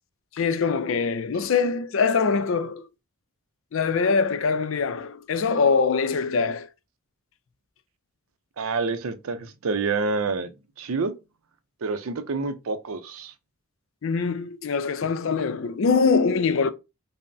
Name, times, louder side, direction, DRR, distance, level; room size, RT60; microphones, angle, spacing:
voice 1, 0.3-2.9 3.7-6.7 14.0-16.7, left 5 dB, 65° left, 0.4 m, -23 dB
voice 2, 8.6-10.5 10.8-11.1 11.8-13.3, right 4 dB, 75° right, 0.5 m, -28 dB
5.3 x 2.1 x 2.6 m
head